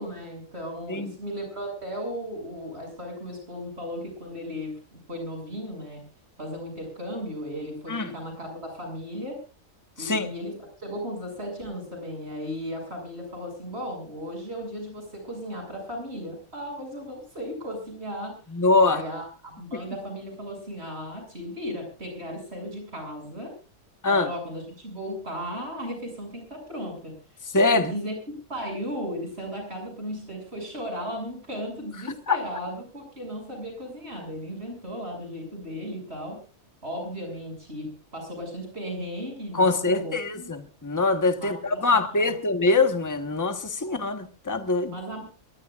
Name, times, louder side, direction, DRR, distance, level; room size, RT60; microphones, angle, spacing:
voice 1, 0.0-6.0 6.4-9.4 10.0-18.4 18.8-23.6 24.1-27.2 27.7-28.2 28.5-36.4 36.8-40.5 41.4-42.3 44.9-45.2, equal, 50° right, 7.6 m, -36 dB
voice 2, 18.5-19.0 24.0-24.3 27.5-27.9 32.3-32.4 39.5-44.9, left 3 dB, 15° left, 1.2 m, -23 dB
23.5 x 18.5 x 2.5 m
omnidirectional pair, 1.4 m